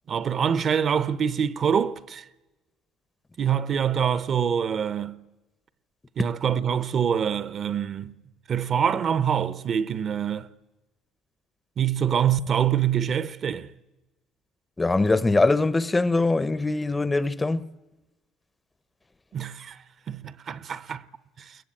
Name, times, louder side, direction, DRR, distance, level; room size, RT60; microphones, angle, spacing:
voice 1, 0.1-2.2 3.4-5.2 6.2-8.1 8.5-10.5 11.8-13.7 19.3-19.8 20.1-21.0 21.4-21.6, right 8 dB, 40° right, 0.8 m, -25 dB
voice 2, 14.8-17.7, left 3 dB, 15° left, 0.7 m, -22 dB
21.0 x 20.5 x 8.7 m
cardioid pair, 115°, 0 cm